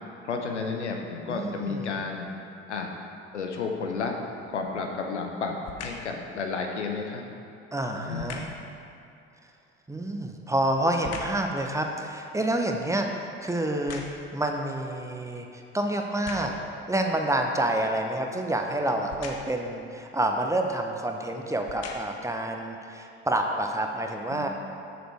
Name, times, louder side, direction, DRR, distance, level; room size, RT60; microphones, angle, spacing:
voice 1, 0.2-2.3 2.7-2.9 3.3-4.2 4.5-7.2 7.9-8.4 24.3-24.5, left 4 dB, 85° left, 2 dB, 0.8 m, -32 dB
voice 2, 1.3-2.0 7.7-8.5 9.9-16.5 16.9-24.5, right 1 dB, 10° right, 3 dB, 0.7 m, -28 dB
sound 1, 4.6-4.9 5.6-6.1 8.1-8.7 10.1-11.5 12.0-14.5 15.1-15.2 16.0-16.7 19.1-19.7 20.7-20.8 21.5-22.3 22.9-23.0, left 5 dB, 45° left, 1.0 m, -42 dB
6.9 x 6.5 x 4.5 m, 2.6 s
figure-of-eight pair, 60°, 34 cm